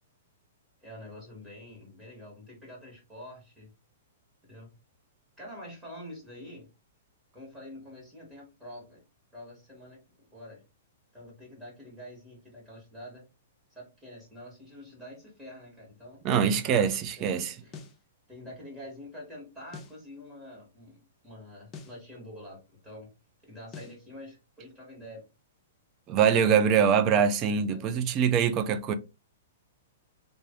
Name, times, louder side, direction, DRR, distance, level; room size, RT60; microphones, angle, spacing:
voice 1, 0.8-3.7 4.5-4.7 5.4-6.7 7.3-9.0 9.3-10.6 11.1-13.2 13.7-16.2 17.2-17.3 17.6-17.7 18.3-23.1 23.4-25.2 27.7-28.0, left 1 dB, 10° right, 1.6 m, -46 dB
voice 2, 16.2-17.6 26.1-28.9, right 7 dB, 30° right, 0.5 m, -24 dB
sound 1, 17.7-18.0 19.7-20.0 21.7-22.0 23.7-24.0, left 5 dB, 20° left, 0.6 m, -45 dB
3.3 x 2.6 x 3.6 m
hypercardioid pair, 140°, 0 cm